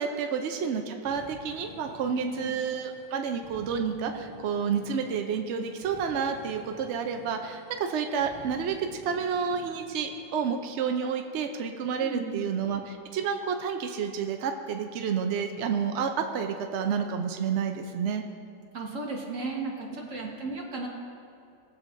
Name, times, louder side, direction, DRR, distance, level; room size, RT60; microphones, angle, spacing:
voice 1, 0.0-18.2 20.2-20.3, right 6 dB, 75° right, 5 dB, 0.6 m, -30 dB
sound 1, 1.0-10.6, left 2 dB, 30° left, 0.8 m, -50 dB
voice 2, 2.1-2.5 12.0-12.3 18.7-20.9, right 3 dB, 45° right, -1 dB, 1.7 m, -34 dB
21.5 x 7.3 x 2.6 m, 2.6 s
omnidirectional pair, 1.9 m